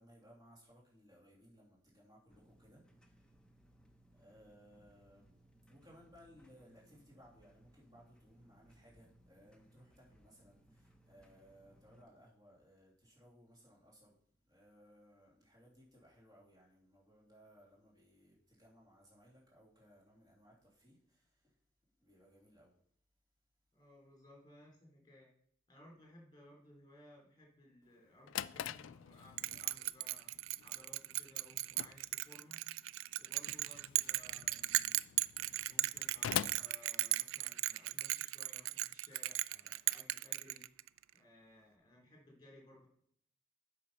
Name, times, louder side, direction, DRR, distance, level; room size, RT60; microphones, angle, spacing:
voice 1, 0.0-3.3 4.1-5.4 5.7-14.1 14.4-21.6 22.0-22.8, equal, 20° right, -5 dB, 3.1 m, -63 dB
sound 1, 2.3-12.0, right 1 dB, 5° left, 0.8 m, -67 dB
voice 2, 23.7-25.3 25.7-30.3 30.6-32.6 33.2-35.0 35.6-40.6 41.1-42.9, left 1 dB, 20° left, -1 dB, 3.4 m, -60 dB
Drawer open or close, 27.9-37.7, left 10 dB, 70° left, 0.3 m, -45 dB
Bell, 29.4-41.0, right 16 dB, 80° right, 0.3 m, -37 dB
8.4 x 6.0 x 5.4 m, 0.68 s
head